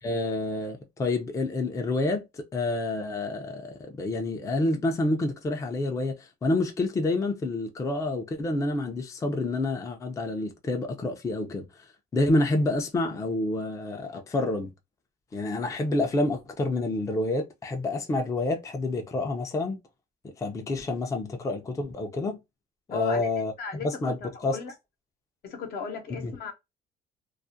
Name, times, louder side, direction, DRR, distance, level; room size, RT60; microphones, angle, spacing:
voice 1, 0.0-2.2 2.5-11.7 12.1-14.7 15.3-19.8 20.4-22.4 22.9-23.5 23.8-24.2 24.4-24.6 26.2-26.3, left 2 dB, 20° left, 0.4 m, -28 dB
voice 2, 22.9-23.3 23.6-24.7 25.4-26.5, left 5 dB, 65° left, 0.8 m, -36 dB
2.3 x 2.1 x 2.6 m
cardioid pair, 110°, 17 cm